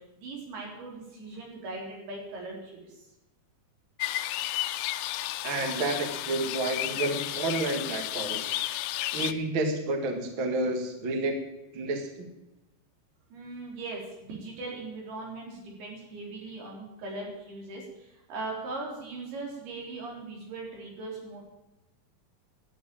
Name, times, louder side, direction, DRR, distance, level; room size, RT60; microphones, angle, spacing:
voice 1, 0.0-3.0 13.3-21.4, right 3 dB, 85° right, -1 dB, 5.7 m, -39 dB
sound 1, 4.0-9.3, left 15 dB, 85° left, 2.6 m, -32 dB
voice 2, 5.4-8.6 9.1-11.4 11.7-12.3, right 2 dB, 40° right, 4 dB, 2.0 m, -30 dB
12.0 x 9.3 x 8.7 m, 0.96 s
omnidirectional pair, 4.4 m